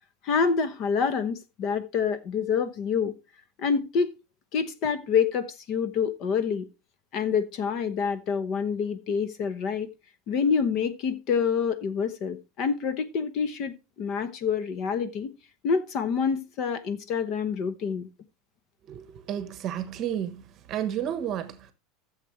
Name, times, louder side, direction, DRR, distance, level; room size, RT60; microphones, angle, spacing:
voice 1, 0.2-3.1 3.6-4.1 4.5-6.7 7.1-9.9 10.3-15.3 15.6-18.1, left 6 dB, 35° left, 0.9 m, -27 dB
voice 2, 18.9-20.4 20.7-21.7, right 10 dB, 30° right, 1.1 m, -31 dB
14.0 x 7.4 x 3.2 m
supercardioid pair, 170°, 0 cm